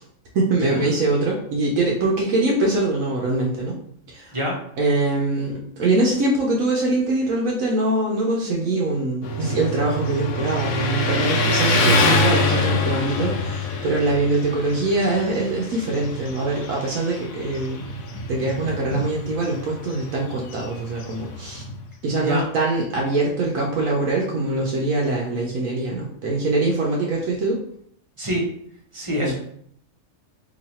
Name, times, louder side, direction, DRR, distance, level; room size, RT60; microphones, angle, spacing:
voice 1, 0.3-3.8 4.1-4.3 4.8-17.8 18.3-21.6 22.0-27.6 29.1-29.3, right 2 dB, 75° right, -2 dB, 1.1 m, -23 dB
Motorcycle, 9.2-21.8, left 2 dB, 80° left, 1.1 m, -25 dB
voice 2, 28.9-29.3, equal, 30° right, -2 dB, 0.7 m, -25 dB
3.0 x 2.7 x 4.1 m, 0.66 s
omnidirectional pair, 1.5 m